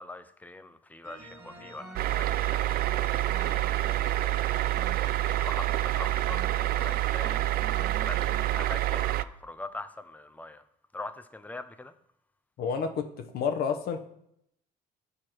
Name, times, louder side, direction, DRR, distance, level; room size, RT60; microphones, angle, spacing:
voice 1, 0.0-4.4 5.2-7.7 8.0-10.6 10.9-11.9, left 2 dB, 10° left, 0.6 m, -43 dB
sound 1, 1.0-8.7, right 1 dB, 15° right, 1.6 m, -46 dB
sound 2, 2.0-9.2, right 15 dB, 65° right, 0.4 m, -27 dB
voice 2, 12.6-14.0, left 6 dB, 65° left, 1.0 m, -30 dB
10.0 x 4.7 x 4.5 m
cardioid pair, 110°, 17 cm